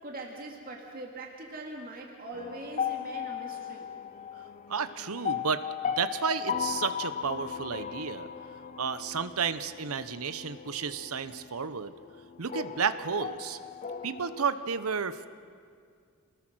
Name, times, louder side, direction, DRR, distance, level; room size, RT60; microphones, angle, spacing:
voice 1, 0.0-3.9, right 2 dB, 45° right, 0 dB, 2.3 m, -42 dB
sound 1, 2.3-14.5, left 7 dB, 35° left, 0.6 m, -37 dB
voice 2, 4.7-8.3 8.8-11.9 12.4-13.6 14.0-15.3, right 6 dB, 85° right, 12 dB, 0.9 m, -32 dB
27.5 x 20.0 x 6.2 m, 2.2 s
head